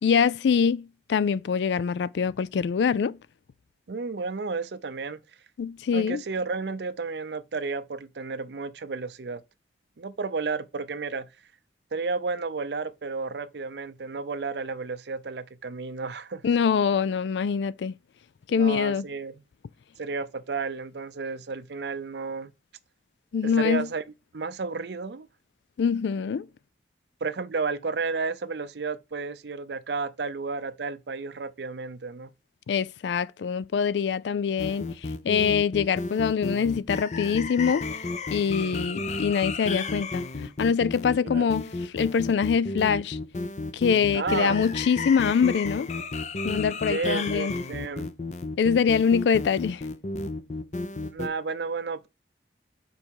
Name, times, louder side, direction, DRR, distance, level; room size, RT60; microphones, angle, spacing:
voice 1, 0.0-3.2 5.6-6.2 16.4-17.9 18.5-19.0 23.3-23.9 25.8-26.5 32.7-34.9 35.2-37.9 38.3-40.2 40.6-41.7 41.9-43.2 43.7-45.9 46.4-47.5 48.6-49.8, left 6 dB, 80° left, 0.4 m, -24 dB
voice 2, 3.9-5.2 5.9-9.4 10.0-11.3 11.9-16.4 18.5-19.3 20.0-22.5 23.4-24.0 24.3-25.3 27.2-32.3 38.6-39.0 41.2-41.5 44.1-44.6 46.9-48.1 50.9-52.1, right 4 dB, 75° right, 0.6 m, -32 dB
sound 1, 34.6-51.3, left 3 dB, 40° left, 0.6 m, -33 dB
5.4 x 4.2 x 4.6 m
head